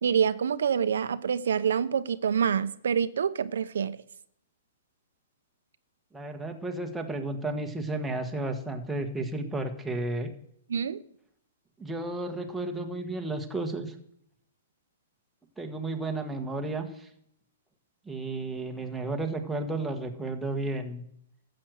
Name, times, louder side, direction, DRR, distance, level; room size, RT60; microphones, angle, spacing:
voice 1, 0.0-4.0 10.7-11.0, right 7 dB, 80° right, 0.8 m, -26 dB
voice 2, 6.1-10.3 11.8-13.9 15.6-17.1 18.0-21.0, right 2 dB, 5° right, 1.5 m, -33 dB
14.0 x 7.8 x 7.9 m
hypercardioid pair, 150°, 0 cm